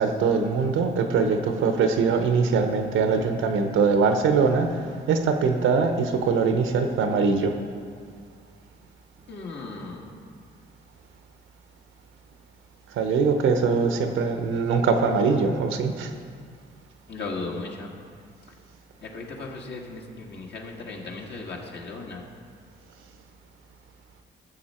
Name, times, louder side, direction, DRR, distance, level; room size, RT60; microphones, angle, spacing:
voice 1, 0.0-7.6 12.9-16.1, right 5 dB, 80° right, 7 dB, 0.9 m, -22 dB
voice 2, 9.3-10.2 17.1-17.9 19.0-22.2, left 3 dB, 60° left, -1 dB, 1.8 m, -36 dB
13.5 x 7.4 x 4.4 m, 2.1 s
cardioid pair, 90°, 20 cm